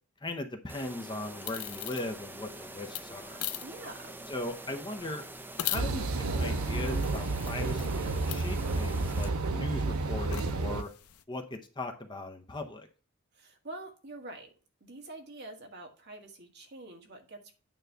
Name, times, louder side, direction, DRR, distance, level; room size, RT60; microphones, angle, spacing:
voice 1, 0.2-3.4 4.3-5.2 5.6-10.9 11.3-12.9, left 2 dB, 20° left, 5 dB, 0.8 m, -39 dB
sound 1, 0.7-9.3, right 2 dB, 10° right, 0.5 m, -46 dB
sound 2, 1.2-11.2, left 12 dB, 80° left, 0.6 m, -43 dB
voice 2, 3.6-4.2 13.3-14.5 14.8-17.5, right 2 dB, 50° right, 2 dB, 1.7 m, -46 dB
sound 3, 5.7-10.8, right 3 dB, 75° right, 0.7 m, -31 dB
9.1 x 3.2 x 6.6 m, 0.36 s
head